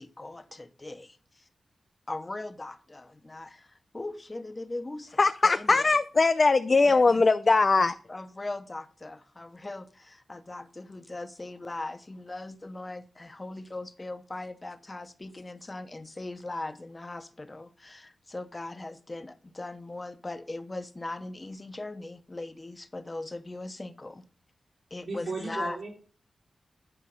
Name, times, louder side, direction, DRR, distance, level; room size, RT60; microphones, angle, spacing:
voice 1, 0.0-1.5 2.1-5.9 6.8-7.2 7.8-24.2 24.9-25.8, left 2 dB, 25° left, 9 dB, 0.8 m, -39 dB
voice 2, 5.2-7.9, left 3 dB, 40° left, 10 dB, 0.4 m, -21 dB
voice 3, 25.0-25.9, right 3 dB, 75° right, -5 dB, 3.3 m, -35 dB
10.0 x 4.8 x 5.6 m, 0.40 s
wide cardioid pair, 115°, 0 cm